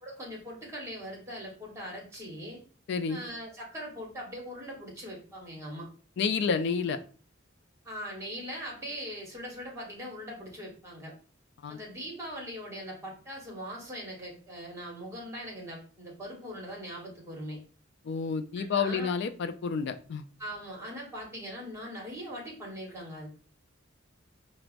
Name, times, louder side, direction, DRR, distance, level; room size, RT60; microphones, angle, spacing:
voice 1, 0.0-2.6 3.1-5.9 7.8-11.1 11.7-17.6 18.6-19.1 20.4-23.3, equal, 15° right, -2 dB, 1.1 m, -41 dB
voice 2, 2.9-3.2 6.2-7.0 11.6-11.8 18.0-20.2, left 5 dB, 60° left, 10 dB, 0.3 m, -29 dB
4.5 x 2.0 x 2.4 m, 0.39 s
head